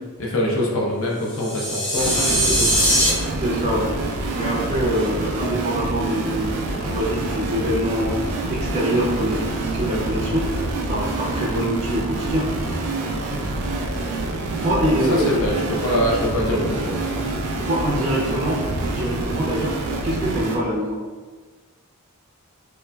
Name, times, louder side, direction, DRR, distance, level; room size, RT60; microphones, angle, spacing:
voice 1, 0.2-2.8 15.1-17.0, left 1 dB, 60° left, -3 dB, 0.6 m, -24 dB
sound 1, 1.3-3.1, equal, 90° left, 1.2 m, -20 dB
sound 2, 2.0-20.6, right 2 dB, 90° right, 0.5 m, -27 dB
voice 2, 3.3-4.0 4.3-8.2 8.5-10.5 10.8-12.5 14.6-15.4 17.1-17.2 17.6-19.8 20.0-21.0, equal, 30° right, -6 dB, 0.5 m, -24 dB
3.8 x 2.3 x 2.2 m, 1.4 s
head